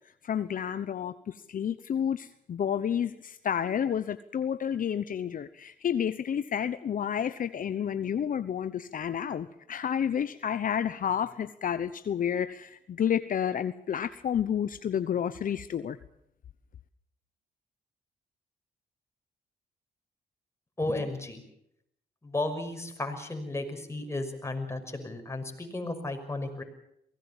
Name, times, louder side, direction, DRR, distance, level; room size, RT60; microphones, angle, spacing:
voice 1, 0.2-16.0, left 8 dB, 60° left, 12 dB, 0.9 m, -30 dB
voice 2, 20.8-21.4 22.2-26.6, left 2 dB, 15° left, 4 dB, 5.9 m, -34 dB
23.0 x 18.5 x 7.3 m, 0.75 s
cardioid pair, 75°, 16 cm